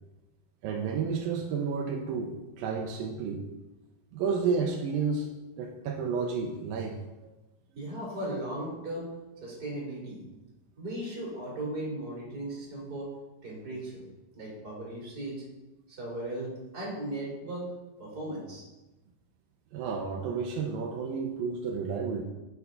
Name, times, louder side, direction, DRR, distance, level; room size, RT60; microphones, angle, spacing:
voice 1, 0.6-3.4 4.1-5.3 5.6-7.0 19.7-22.2, right 5 dB, 80° right, 2 dB, 2.5 m, -31 dB
voice 2, 7.8-9.1 9.4-10.3 10.8-13.1 13.4-14.0 14.3-15.4 15.9-17.7 18.0-18.6, right 1 dB, 25° right, -5 dB, 3.5 m, -37 dB
8.8 x 8.1 x 3.8 m, 1.1 s
omnidirectional pair, 4.2 m